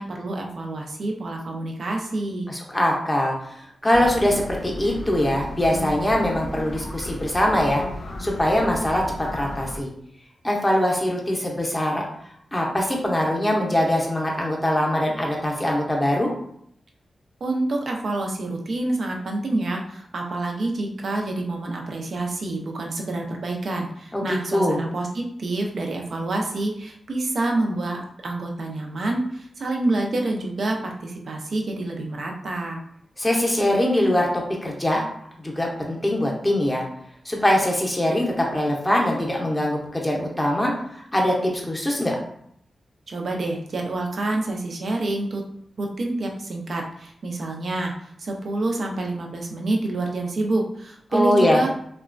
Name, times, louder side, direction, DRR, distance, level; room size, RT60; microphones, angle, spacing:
voice 1, 0.0-2.5 17.4-32.8 43.1-45.4 45.8-47.9 48.2-51.7, right 2 dB, 60° right, 1 dB, 0.5 m, -27 dB
voice 2, 2.5-3.3 3.8-7.8 8.2-9.9 10.4-12.1 12.5-16.3 24.1-24.8 33.2-34.3 34.6-35.0 35.4-36.8 37.3-40.7 41.1-42.2 51.1-51.6, left 1 dB, 10° left, -1 dB, 0.6 m, -22 dB
sound 1, 3.9-9.8, left 2 dB, 60° left, 0.4 m, -34 dB
2.9 x 2.1 x 2.5 m, 0.69 s
wide cardioid pair, 105°, 0 cm